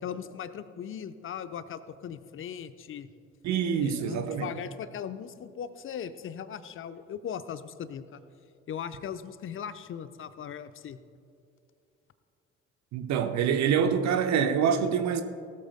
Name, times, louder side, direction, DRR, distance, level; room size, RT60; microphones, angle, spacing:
voice 1, 0.0-3.1 3.8-8.2 8.7-11.0, left 8 dB, 35° left, 0.8 m, -39 dB
voice 2, 3.4-4.5 12.9-15.2, right 7 dB, 50° right, 1.0 m, -26 dB
18.5 x 13.0 x 2.2 m
figure-of-eight pair, 50°, 35 cm